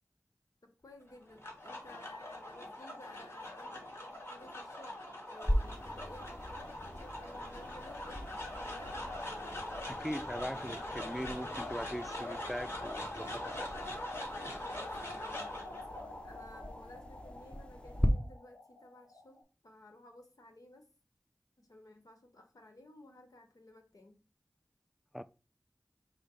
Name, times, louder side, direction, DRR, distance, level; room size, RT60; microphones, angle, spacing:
voice 1, 0.6-5.0 5.3-9.2 14.7-20.8 21.6-24.2, left 1 dB, 85° left, 1.0 m, -56 dB
sound 1, 1.1-19.4, left 1 dB, 45° left, 1.6 m, -43 dB
sound 2, 5.4-18.1, equal, 15° left, 0.7 m, -40 dB
voice 2, 9.9-13.7 25.1-25.2, equal, ahead, 0.3 m, -41 dB
5.1 x 2.1 x 4.7 m
wide cardioid pair, 40°, 6 cm